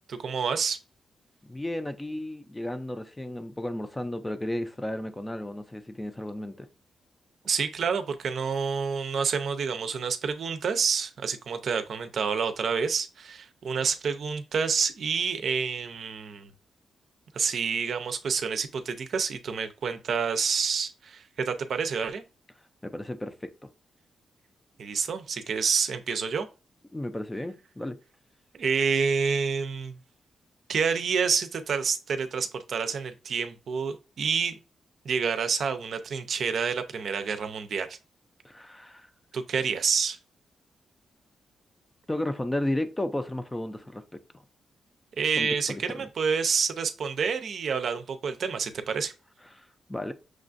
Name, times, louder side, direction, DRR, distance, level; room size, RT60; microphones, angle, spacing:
voice 1, 0.1-0.8 7.4-16.5 17.3-22.2 24.8-26.5 28.5-29.9 30.7-34.5 35.0-38.0 39.3-40.2 45.2-49.1, right 6 dB, 65° right, 0.5 m, -28 dB
voice 2, 1.4-6.7 22.8-23.5 26.9-28.0 38.4-39.1 42.1-44.0 45.4-46.1 49.5-50.1, left 1 dB, 15° left, 0.5 m, -33 dB
6.2 x 2.4 x 2.5 m
cardioid pair, 105°, 0 cm